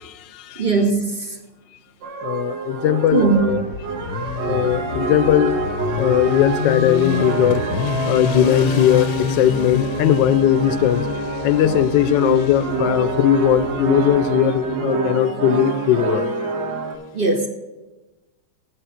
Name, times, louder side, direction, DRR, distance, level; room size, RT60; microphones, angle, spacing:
voice 1, 0.0-0.6 2.2-3.6 4.5-5.6 6.0-11.1 11.4-16.3, left 11 dB, 85° left, 14 dB, 1.3 m, -19 dB
voice 2, 0.6-1.4 3.1-3.5 17.1-17.5, right 4 dB, 40° right, 4 dB, 0.8 m, -19 dB
sound 1, 2.0-16.9, right 3 dB, 85° right, 1.8 m, -26 dB
Motorcycle, 3.0-14.7, left 6 dB, 70° left, 1.1 m, -28 dB
8.6 x 7.7 x 6.2 m, 1.1 s
omnidirectional pair, 1.9 m